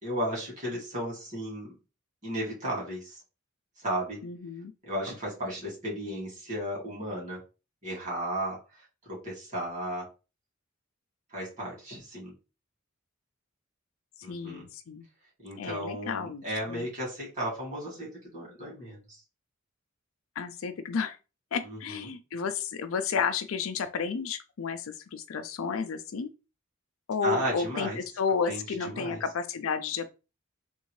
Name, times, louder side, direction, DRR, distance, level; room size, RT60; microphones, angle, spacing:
voice 1, 0.0-1.7 2.2-3.2 3.8-4.2 4.9-7.4 7.8-10.1 11.3-12.3 14.2-14.6 15.4-19.2 21.6-22.1 27.2-28.0 28.5-29.2, right 1 dB, 35° right, 2.2 m, -34 dB
voice 2, 4.2-4.7 14.3-15.1 15.6-16.9 20.4-21.2 21.5-26.3 27.1-30.1, left 6 dB, 80° left, 0.4 m, -32 dB
3.6 x 2.6 x 3.1 m
head